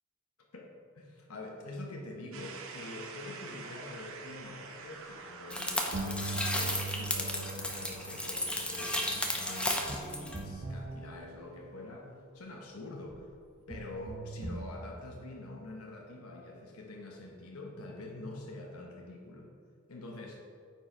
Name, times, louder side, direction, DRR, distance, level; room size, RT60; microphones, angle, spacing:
voice 1, 0.5-13.3 13.7-19.5 19.9-20.4, left 2 dB, 90° left, 0 dB, 1.0 m, -45 dB
sound 1, 2.3-12.2, right 4 dB, 70° right, 0.9 m, -49 dB
sound 2, 5.5-10.4, left 1 dB, 5° left, 0.7 m, -34 dB
sound 3, 5.9-11.8 13.1-13.2 13.7-14.7, right 2 dB, 30° right, 0.6 m, -41 dB
9.0 x 4.7 x 4.5 m, 2.2 s
head